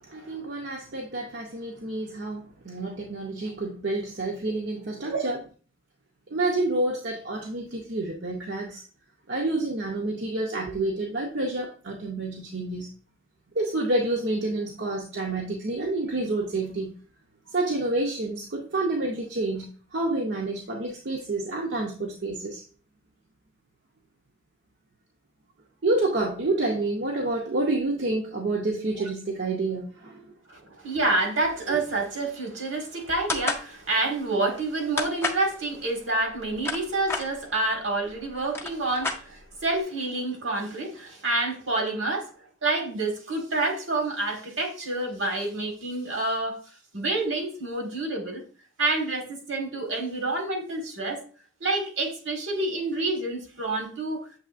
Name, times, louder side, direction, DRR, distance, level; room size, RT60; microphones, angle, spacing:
voice 1, 0.1-5.4 6.3-8.8 9.3-12.9 13.5-16.9 17.5-22.6 25.8-30.2 31.7-31.8, right 2 dB, 65° right, 0.6 m, -28 dB
voice 2, 30.5-42.3 42.6-46.6 46.9-48.4 48.8-51.2 51.6-54.2, right 2 dB, 80° right, 1.4 m, -28 dB
sound 1, 33.3-33.7 35.0-35.5 36.4-37.3 38.1-38.2 38.4-39.6, left 3 dB, 10° left, 0.4 m, -29 dB
6.8 x 3.1 x 2.4 m
head